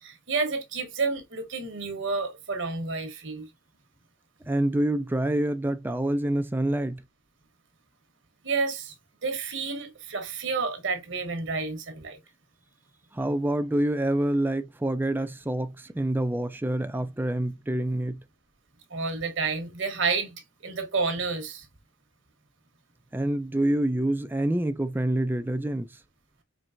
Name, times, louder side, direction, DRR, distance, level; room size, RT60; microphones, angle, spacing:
voice 1, 0.0-3.5 8.4-8.9 9.2-12.2 18.9-20.3 20.6-21.7, right 4 dB, 60° right, 1.1 m, -30 dB
voice 2, 4.5-7.0 13.1-18.2 23.1-25.9, right 1 dB, 10° right, 0.4 m, -27 dB
4.5 x 3.2 x 2.5 m
head